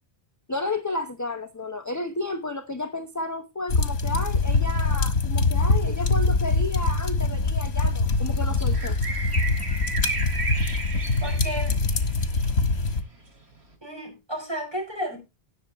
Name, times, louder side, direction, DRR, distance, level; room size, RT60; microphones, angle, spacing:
voice 1, 0.5-9.0, left 2 dB, 20° left, 0.8 m, -32 dB
sound 1, 3.7-13.0, left 3 dB, 85° left, 1.5 m, -24 dB
sound 2, 8.2-12.9 13.7-13.8, right 3 dB, 85° right, 2.7 m, -33 dB
voice 2, 11.2-11.8 13.8-15.2, equal, 25° right, 4.9 m, -32 dB
18.5 x 6.8 x 2.9 m
omnidirectional pair, 1.1 m